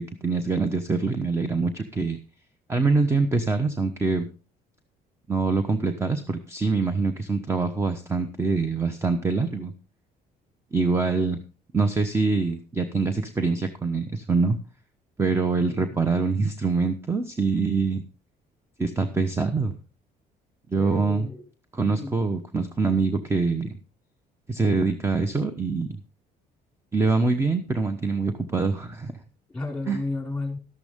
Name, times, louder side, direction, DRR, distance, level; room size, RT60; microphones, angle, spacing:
voice 1, 0.0-2.2 2.7-4.3 5.3-9.7 10.7-11.4 11.7-14.6 15.2-18.0 18.8-19.8 20.7-21.3 21.7-23.7 24.5-26.0 26.9-29.1 29.9-30.0, right 4 dB, 15° right, 9 dB, 1.0 m, -24 dB
voice 2, 20.8-21.4 21.9-22.2 29.5-30.6, left 2 dB, 5° left, 2 dB, 5.0 m, -33 dB
12.5 x 12.0 x 3.6 m, 0.35 s
cardioid pair, 110°, 17 cm